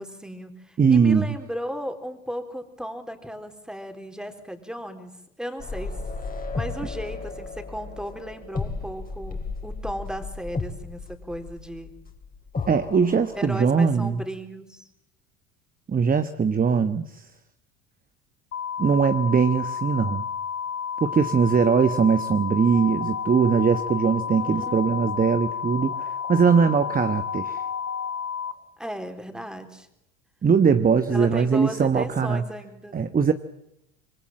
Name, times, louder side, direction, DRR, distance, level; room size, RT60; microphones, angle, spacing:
voice 1, 0.0-5.1 5.4-5.9 6.5-11.9 13.3-14.9 24.3-24.9 28.8-29.9 31.1-33.1, equal, ahead, 6 dB, 4.0 m, -35 dB
voice 2, 0.8-1.4 12.7-14.2 15.9-17.3 18.8-20.3 21.0-27.6 30.4-32.4 32.9-33.3, right 6 dB, 20° right, 11 dB, 1.3 m, -21 dB
sound 1, 5.6-13.7, left 3 dB, 20° left, 4.2 m, -34 dB
sound 2, 18.5-28.5, left 7 dB, 85° left, 1.2 m, -31 dB
sound 3, 22.7-28.5, left 7 dB, 45° left, 5.9 m, -38 dB
26.0 x 23.5 x 7.6 m, 0.81 s
figure-of-eight pair, 70°, 39 cm